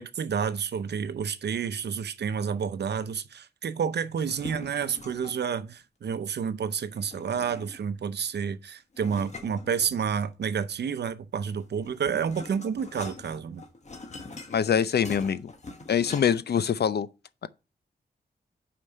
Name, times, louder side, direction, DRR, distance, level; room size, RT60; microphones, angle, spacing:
voice 1, 0.0-13.6, right 7 dB, 75° right, 0.7 m, -30 dB
sound 1, 4.1-5.5 6.9-7.9 8.9-10.3 11.5-16.6, left 3 dB, 40° left, 1.4 m, -44 dB
voice 2, 14.5-15.5 15.9-17.1, left 8 dB, 70° left, 0.5 m, -24 dB
5.5 x 4.8 x 6.4 m
cardioid pair, 70°, 17 cm